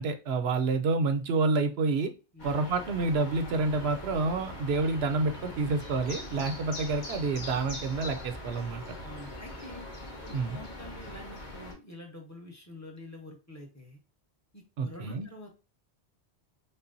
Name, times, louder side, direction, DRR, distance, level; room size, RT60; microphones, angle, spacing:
voice 1, 0.0-2.1 2.4-8.8 10.3-10.6 14.8-15.3, right 3 dB, 70° right, 8 dB, 0.9 m, -28 dB
sound 1, 2.4-11.7, left 1 dB, 45° left, 1.2 m, -42 dB
voice 2, 9.0-9.9 10.3-14.0 14.5-15.5, left 1 dB, 15° left, 0 dB, 0.9 m, -47 dB
5.5 x 2.2 x 2.6 m, 0.32 s
omnidirectional pair, 1.1 m